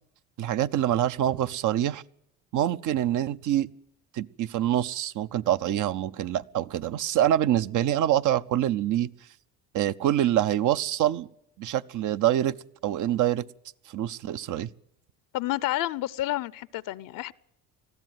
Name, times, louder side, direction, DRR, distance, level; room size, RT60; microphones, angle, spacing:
voice 1, 0.4-2.0 2.5-3.7 4.1-9.1 9.7-11.3 11.6-12.6 12.8-13.5 13.9-14.7, right 12 dB, 55° right, 0.8 m, -25 dB
voice 2, 15.3-17.3, left 16 dB, 65° left, 0.7 m, -30 dB
20.5 x 14.5 x 9.2 m
supercardioid pair, 75°, 36 cm